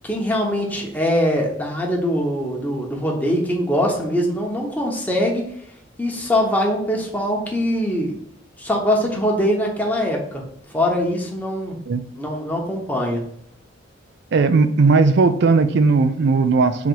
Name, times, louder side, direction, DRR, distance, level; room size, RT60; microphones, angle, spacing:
voice 1, 0.0-5.4 6.0-8.1 8.6-10.4 10.7-11.8 12.2-13.2, equal, 10° left, -1 dB, 0.9 m, -22 dB
voice 2, 14.3-16.9, right 4 dB, 60° right, 11 dB, 0.4 m, -17 dB
3.9 x 2.9 x 4.5 m, 0.72 s
head